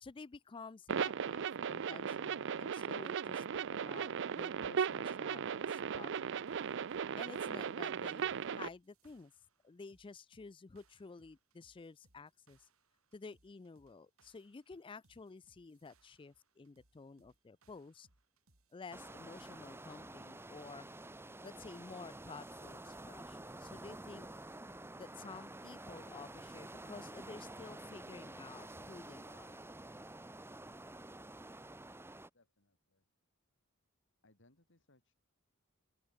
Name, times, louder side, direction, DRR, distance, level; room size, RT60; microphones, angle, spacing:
voice 1, 0.0-6.5 7.2-9.3 9.6-12.7 13.1-18.1 18.7-20.9 21.4-24.3 24.9-29.7, left 4 dB, 25° left, 0.4 m, -52 dB
sound 1, 0.9-8.7, right 7 dB, 60° right, 0.5 m, -37 dB
sound 2, 6.5-20.0, right 3 dB, 75° right, 4.2 m, -74 dB
sound 3, 18.9-32.3, right 2 dB, 10° right, 1.2 m, -50 dB
voice 2, 32.3-33.0 34.2-35.1, left 2 dB, 60° left, 3.9 m, -70 dB
open air
head